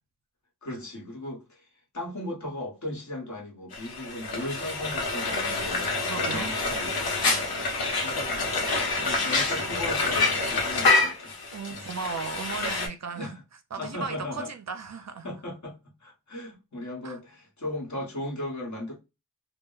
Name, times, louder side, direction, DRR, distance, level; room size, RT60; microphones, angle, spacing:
voice 1, 0.6-7.6 8.0-8.7 9.0-11.4 11.7-11.9 13.1-13.4 13.8-14.5 15.2-18.9, left 1 dB, 50° left, 1.2 m, -37 dB
Frying (food), 3.7-12.9, left 3 dB, 90° left, 0.9 m, -27 dB
voice 2, 6.0-6.5 11.5-13.4 13.7-15.3 17.0-17.2, right 5 dB, 50° right, 0.5 m, -36 dB
2.1 x 2.1 x 3.8 m
wide cardioid pair, 95°, 36 cm